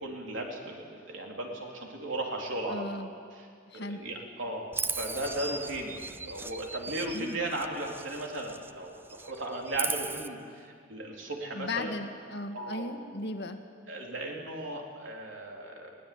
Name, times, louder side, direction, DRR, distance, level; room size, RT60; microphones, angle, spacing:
voice 1, 0.0-3.0 3.3-3.5 3.7-11.9 12.5-12.9 13.9-16.0, right 1 dB, 65° right, 0 dB, 4.0 m, -36 dB
voice 2, 2.7-3.1 3.7-4.0 7.1-7.4 11.5-13.6, left 2 dB, 60° left, 5 dB, 1.8 m, -36 dB
Chirp tweet, 4.7-8.8 9.0-10.3, right 4 dB, 10° right, 0.5 m, -37 dB
22.0 x 19.0 x 8.9 m, 2.2 s
head